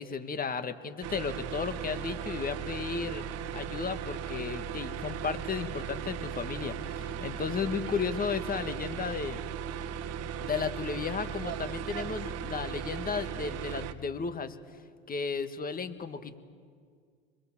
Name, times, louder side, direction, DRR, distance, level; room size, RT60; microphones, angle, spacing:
voice 1, 0.0-3.2 3.5-9.4 10.4-14.6 15.1-16.4, left 5 dB, 30° left, 10 dB, 1.7 m, -34 dB
sound 1, 1.0-13.9, right 8 dB, 50° right, 1.5 m, -37 dB
28.5 x 22.0 x 7.4 m, 2.1 s
hypercardioid pair, 85°, 31 cm